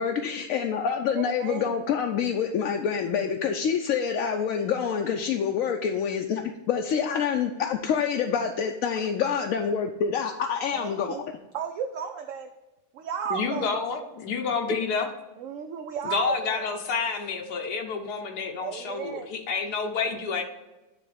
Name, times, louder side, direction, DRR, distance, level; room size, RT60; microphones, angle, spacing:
voice 1, 0.0-11.2, left 7 dB, 70° left, 3 dB, 0.9 m, -27 dB
voice 2, 1.1-1.7 10.7-11.2 11.5-12.5 12.9-13.7 15.4-16.6 18.6-19.3, right 7 dB, 70° right, 5 dB, 0.8 m, -34 dB
voice 3, 13.3-15.1 16.0-20.4, left 5 dB, 85° left, 3 dB, 1.4 m, -29 dB
9.4 x 3.5 x 4.9 m, 1.0 s
omnidirectional pair, 1.6 m